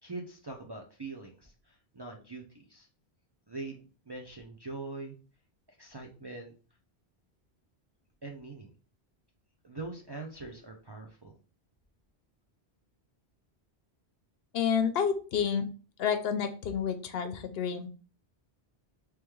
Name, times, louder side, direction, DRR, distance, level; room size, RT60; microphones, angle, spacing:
voice 1, 0.0-2.9 3.5-5.2 5.8-6.5 8.2-8.7 9.6-11.3, right 3 dB, 35° right, 0 dB, 0.4 m, -43 dB
voice 2, 14.5-15.6 16.0-17.9, left 7 dB, 70° left, 7 dB, 0.8 m, -29 dB
3.4 x 3.0 x 3.1 m, 0.36 s
omnidirectional pair, 1.1 m